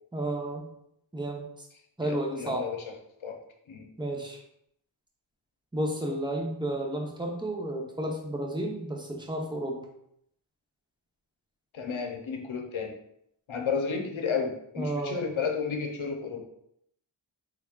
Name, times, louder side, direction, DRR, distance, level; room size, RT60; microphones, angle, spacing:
voice 1, 0.1-0.6 1.1-1.7 2.0-2.7 4.0-4.4 5.7-9.8 14.8-15.2, right 1 dB, 10° right, 0 dB, 0.8 m, -32 dB
voice 2, 2.0-2.8 3.2-3.4 3.7-3.9 11.7-12.9 13.5-16.4, left 5 dB, 75° left, 3 dB, 0.8 m, -32 dB
3.5 x 3.4 x 2.4 m, 0.73 s
cardioid pair, 45°, 48 cm